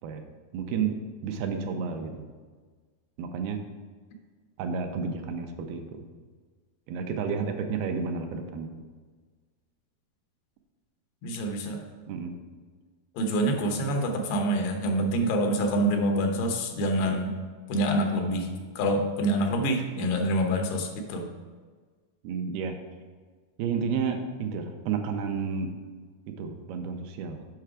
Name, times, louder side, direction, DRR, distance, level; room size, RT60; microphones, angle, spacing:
voice 1, 0.5-0.9 1.2-2.3 3.2-3.6 4.6-6.0 6.9-8.8 12.1-12.3 22.2-22.8 23.6-25.7 26.2-27.5, right 5 dB, 85° right, 5 dB, 2.6 m, -31 dB
voice 2, 11.2-11.8 13.2-17.3 17.7-18.5 18.8-21.3, right 1 dB, 85° left, 3 dB, 3.0 m, -26 dB
7.8 x 5.8 x 4.9 m, 1.5 s
omnidirectional pair, 4.4 m